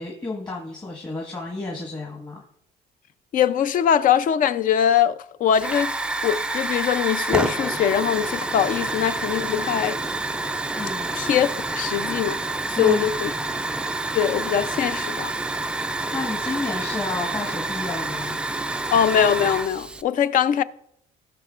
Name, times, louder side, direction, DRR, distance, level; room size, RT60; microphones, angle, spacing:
voice 1, 0.0-2.4 10.8-11.1 12.7-13.1 16.1-18.4, left 3 dB, 25° left, 1.5 m, -31 dB
voice 2, 3.3-6.0 6.2-10.0 11.1-12.4 12.7-13.3 14.1-15.3 18.9-20.6, left 9 dB, 55° left, 0.5 m, -22 dB
Hiss / Fire, 5.5-20.0, right 2 dB, 5° right, 0.3 m, -28 dB
16.5 x 6.6 x 2.5 m
cardioid pair, 110°, 17 cm